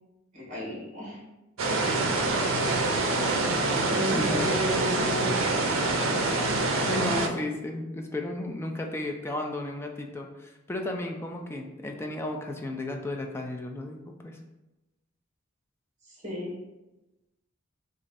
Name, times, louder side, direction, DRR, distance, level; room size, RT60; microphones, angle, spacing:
voice 1, 0.3-1.2 3.8-5.3 16.2-16.5, equal, 40° right, -4 dB, 1.4 m, -33 dB
sound 1, 1.6-7.3, right 2 dB, 85° right, 0.5 m, -26 dB
voice 2, 4.1-4.5 6.8-14.4, left 2 dB, 10° left, 2 dB, 0.3 m, -34 dB
3.1 x 2.5 x 3.9 m, 1.0 s
head